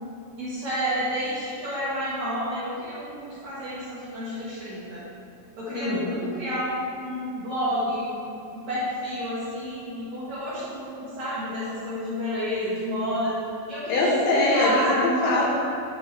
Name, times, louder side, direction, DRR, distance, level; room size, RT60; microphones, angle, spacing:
voice 1, 0.4-5.0 5.6-8.1 8.5-13.3 13.7-14.0 14.5-15.1, equal, 70° right, -11 dB, 1.7 m, -30 dB
voice 2, 5.7-6.1 13.9-15.5, left 2 dB, 75° left, -5 dB, 2.6 m, -22 dB
9.0 x 5.1 x 3.2 m, 2.6 s
omnidirectional pair, 4.8 m